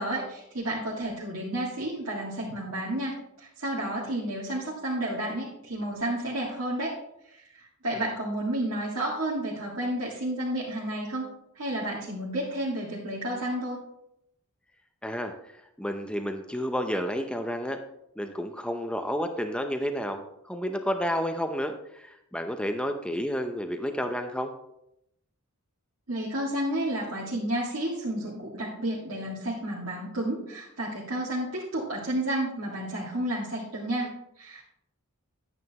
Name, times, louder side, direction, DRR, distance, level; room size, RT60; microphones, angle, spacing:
voice 1, 0.0-7.0 7.3-11.3 11.5-13.8 26.1-34.6, right 1 dB, 65° right, -7 dB, 2.0 m, -31 dB
voice 2, 15.0-15.5 15.8-17.8 18.2-24.5, equal, 5° left, 6 dB, 0.6 m, -31 dB
11.0 x 9.3 x 2.9 m, 0.80 s
head